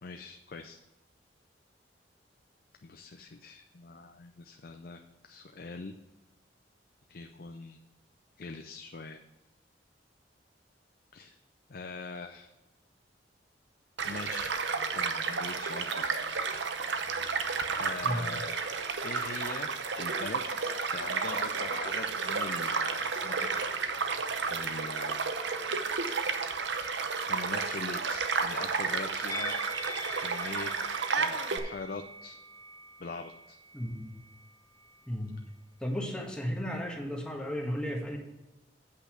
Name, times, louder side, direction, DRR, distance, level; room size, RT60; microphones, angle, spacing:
voice 1, 0.0-0.8 2.8-6.0 7.1-7.8 8.4-9.2 11.1-11.4 11.7-12.5 14.0-14.6 14.9-16.1 17.7-18.6 19.0-20.5 20.9-23.6 24.5-25.2 27.3-29.5 30.2-32.4 33.0-33.6, left 3 dB, 55° left, 6 dB, 0.5 m, -42 dB
Child speech kid speaking / Stream / Car passing by, 14.0-31.6, right 5 dB, 85° right, 0.8 m, -32 dB
Musical instrument, 29.3-34.5 34.8-35.0, equal, 20° left, 0.7 m, -43 dB
voice 2, 33.7-34.2 35.1-35.4 35.8-38.2, equal, 5° left, 0 dB, 1.5 m, -34 dB
8.4 x 5.5 x 5.9 m, 1.0 s
head